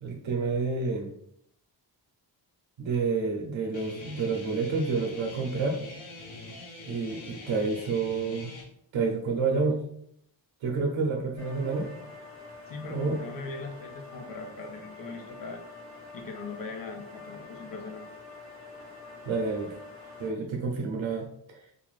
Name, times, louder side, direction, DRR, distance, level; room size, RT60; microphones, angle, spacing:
voice 1, 0.0-1.1 2.8-5.8 6.9-8.6 8.9-9.8 10.6-11.9 12.9-13.2 19.2-19.8 20.2-21.6, right 4 dB, 90° right, 2 dB, 0.6 m, -29 dB
Guitar, 3.7-8.6, left 2 dB, 85° left, 0.8 m, -44 dB
sound 1, 11.4-20.3, left 3 dB, 35° left, 1.4 m, -46 dB
voice 2, 12.7-15.6 16.1-18.1, left 3 dB, 50° left, 3 dB, 0.5 m, -40 dB
2.5 x 2.4 x 3.1 m, 0.70 s
wide cardioid pair, 145°, 46 cm